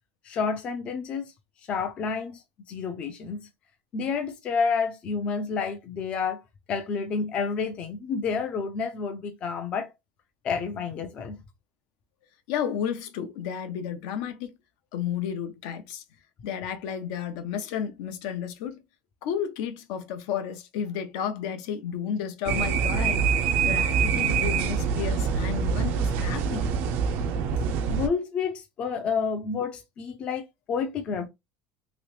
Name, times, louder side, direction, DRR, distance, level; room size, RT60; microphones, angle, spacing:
voice 1, 0.2-1.3 1.7-2.4 2.7-3.5 3.9-6.4 6.7-9.9 10.4-11.4 27.9-31.3, left 5 dB, 30° left, 0.5 m, -29 dB
voice 2, 12.5-14.5 14.9-16.0 16.4-18.8 19.2-23.2 23.6-26.7, left 8 dB, 65° left, 0.7 m, -32 dB
sound 1, 22.4-28.1, right 6 dB, 50° right, 0.4 m, -25 dB
3.0 x 2.9 x 3.0 m
cardioid pair, 180°, 4 cm